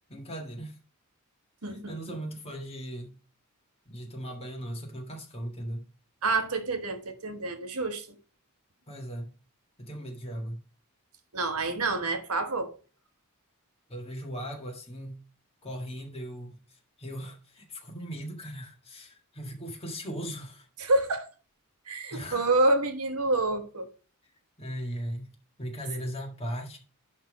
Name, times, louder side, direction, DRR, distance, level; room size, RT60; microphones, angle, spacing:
voice 1, 0.1-0.8 1.6-3.1 3.9-5.8 8.9-9.3 9.8-10.6 13.9-15.2 15.6-20.7 22.1-22.5 24.6-25.3 25.6-26.8, equal, 25° left, 1.8 m, -38 dB
voice 2, 1.6-2.1 6.2-8.2 11.3-12.7 20.8-21.3 21.9-23.9, right 2 dB, 75° right, 1.2 m, -28 dB
10.5 x 3.6 x 5.2 m
head